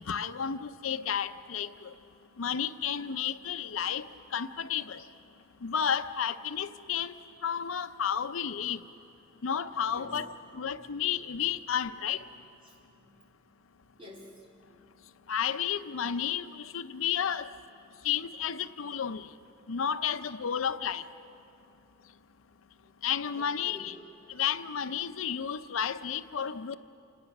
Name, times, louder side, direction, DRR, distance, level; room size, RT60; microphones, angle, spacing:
voice 1, 0.1-1.9 2.4-5.0 5.6-7.1 7.4-8.8 9.4-10.3 10.5-12.3 15.3-17.5 18.0-19.3 19.7-21.0 23.0-23.9 24.3-26.8, left 8 dB, 75° left, 11 dB, 0.6 m, -32 dB
voice 2, 9.8-11.0 11.3-11.4 12.6-13.3 14.0-14.5 22.8-22.9 23.4-23.9, left 1 dB, 25° right, -2 dB, 3.5 m, -50 dB
27.5 x 19.0 x 6.0 m, 2.7 s
head